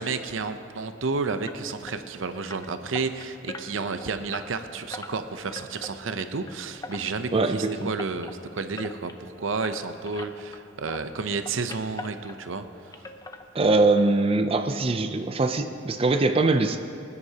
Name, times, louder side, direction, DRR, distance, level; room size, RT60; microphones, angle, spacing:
voice 1, 0.0-12.6, right 4 dB, 85° right, 9 dB, 0.7 m, -31 dB
sound 1, 1.5-10.6 10.9-12.7 12.9-14.0 14.3-14.4 14.9-15.0 15.3-15.4, left 2 dB, 20° left, 0.5 m, -43 dB
voice 2, 7.3-7.9 13.5-16.8, right 3 dB, 30° right, 7 dB, 0.5 m, -22 dB
24.5 x 9.7 x 2.9 m, 2.6 s
head